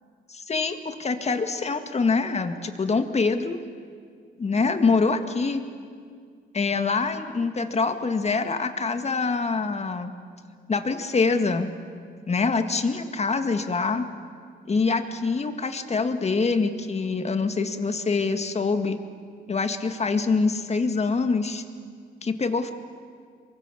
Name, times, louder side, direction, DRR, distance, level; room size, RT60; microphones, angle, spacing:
voice 1, 0.3-3.6 4.4-5.6 6.5-10.1 10.7-11.7 12.3-14.1 14.7-19.0 19.5-21.6 22.2-22.7, left 4 dB, 35° left, 8 dB, 2.0 m, -25 dB
28.0 x 23.5 x 7.0 m, 2.1 s
cardioid pair, 90°, 20 cm